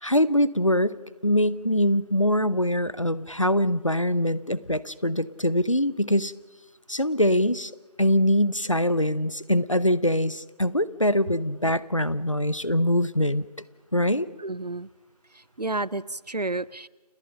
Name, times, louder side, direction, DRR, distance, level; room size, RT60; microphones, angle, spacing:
voice 1, 0.0-1.0 1.2-6.3 6.9-7.7 8.0-13.4 13.9-14.3, left 1 dB, 50° left, 19 dB, 0.7 m, -23 dB
voice 2, 14.4-14.9 15.3-16.9, right 2 dB, 75° right, 22 dB, 0.7 m, -31 dB
29.5 x 18.0 x 5.8 m, 1.2 s
figure-of-eight pair, 180°, 21 cm